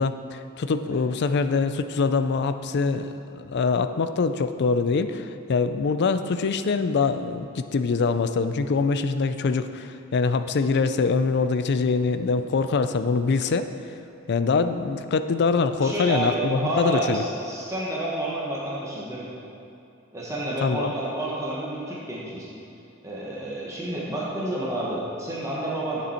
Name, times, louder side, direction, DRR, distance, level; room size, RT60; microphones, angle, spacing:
voice 1, 0.0-13.7 14.3-17.2 20.6-20.9, left 4 dB, 55° left, 10 dB, 0.4 m, -24 dB
voice 2, 15.8-19.3 20.1-22.5 23.0-26.0, right 1 dB, 15° right, -6 dB, 1.2 m, -29 dB
9.5 x 7.1 x 4.4 m, 2.7 s
head